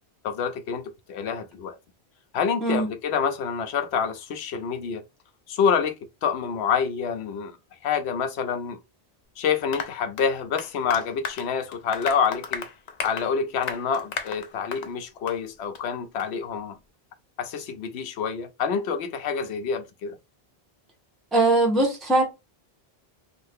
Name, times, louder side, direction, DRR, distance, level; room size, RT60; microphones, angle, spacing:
voice 1, 0.2-1.8 2.3-5.0 5.5-5.9 6.2-7.6 7.8-8.8 9.4-12.7 13.0-16.8 17.4-20.2, left 6 dB, 80° left, 0.9 m, -27 dB
Applause, 9.7-14.9 15.3-15.4 15.7-15.8 16.2-16.3, left 6 dB, 50° left, 0.5 m, -35 dB
voice 2, 21.3-22.2, right 2 dB, ahead, 0.9 m, -20 dB
2.7 x 2.4 x 3.3 m
omnidirectional pair, 1.1 m